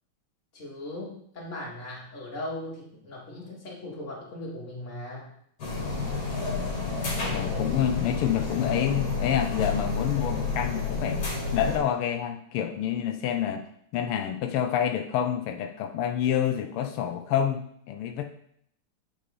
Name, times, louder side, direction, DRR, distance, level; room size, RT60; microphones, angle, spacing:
voice 1, 0.5-5.3, left 1 dB, 35° left, -3 dB, 2.1 m, -38 dB
sound 1, 5.6-11.8, left 4 dB, 50° left, 2.3 m, -30 dB
voice 2, 7.3-11.2 11.5-13.6 13.9-18.2, left 9 dB, 85° left, 6 dB, 1.5 m, -28 dB
8.2 x 5.3 x 3.7 m, 0.69 s
omnidirectional pair, 2.4 m